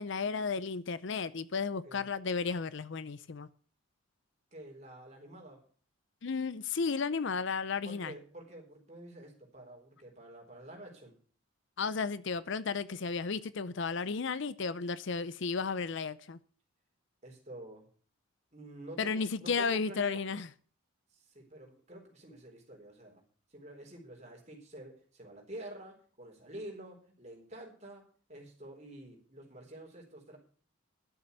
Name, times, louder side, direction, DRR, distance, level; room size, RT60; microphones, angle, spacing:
voice 1, 0.0-3.5 6.2-8.1 11.8-16.4 19.0-20.5, left 5 dB, 55° left, 0.5 m, -33 dB
voice 2, 4.5-5.6 7.8-11.1 17.2-17.9 18.5-20.4 21.1-23.2 23.5-30.4, right 1 dB, 30° right, 3.9 m, -48 dB
11.5 x 7.0 x 8.1 m
head